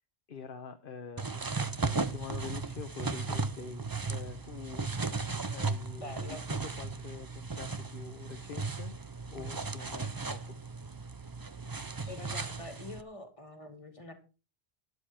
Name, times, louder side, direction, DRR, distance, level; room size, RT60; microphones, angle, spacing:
voice 1, 0.3-4.9 5.4-9.0 9.3-10.5, left 6 dB, 55° left, 8 dB, 1.1 m, -45 dB
sound 1, 1.2-13.0, right 3 dB, 25° right, 0.6 m, -36 dB
voice 2, 6.0-6.4 12.0-14.1, left 2 dB, 30° left, 4 dB, 2.4 m, -45 dB
12.5 x 11.0 x 4.4 m, 0.33 s
omnidirectional pair, 1.1 m